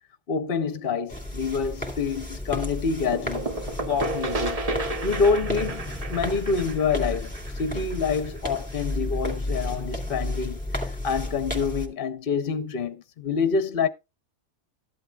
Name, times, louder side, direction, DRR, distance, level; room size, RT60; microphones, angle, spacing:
voice 1, 0.3-3.5 3.9-4.6 5.0-13.9, left 5 dB, 55° left, 0.9 m, -27 dB
sound 1, 1.1-11.9, left 1 dB, 5° left, 2.6 m, -32 dB
sound 2, 3.1-8.7, right 2 dB, 35° right, 0.9 m, -32 dB
13.5 x 11.5 x 2.3 m
omnidirectional pair, 1.2 m